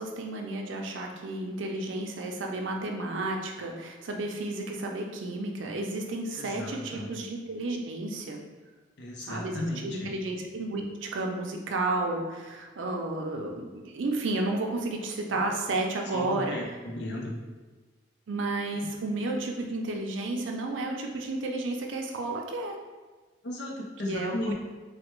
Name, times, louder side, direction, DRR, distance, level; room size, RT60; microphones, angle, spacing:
voice 1, 0.0-8.4 9.3-16.6 18.3-22.8 24.1-24.5, right 2 dB, 90° right, 2 dB, 0.5 m, -32 dB
voice 2, 6.4-7.1 9.0-10.1 16.1-17.4 23.4-24.5, left 1 dB, 65° left, -1 dB, 0.5 m, -35 dB
3.3 x 2.2 x 3.0 m, 1.3 s
head